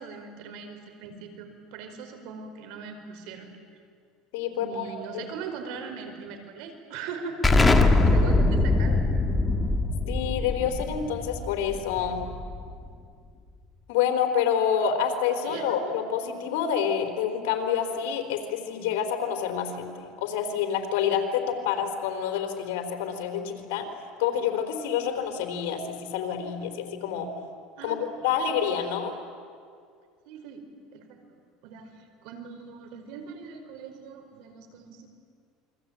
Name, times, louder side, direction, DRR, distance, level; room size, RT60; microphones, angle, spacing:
voice 1, 0.0-3.5 4.6-7.5 8.0-9.1 15.4-15.7 27.8-28.0 30.3-30.6 30.9-31.4 31.6-35.1, right 5 dB, 70° right, 6 dB, 5.0 m, -40 dB
voice 2, 4.3-4.9 10.1-12.2 13.9-23.9 24.2-27.3 27.8-29.1, left 8 dB, 85° left, 5 dB, 4.0 m, -28 dB
Explosion, 7.4-12.8, left 2 dB, 15° left, 1.8 m, -23 dB
28.5 x 23.0 x 9.0 m, 2.2 s
cardioid pair, 135°, 0 cm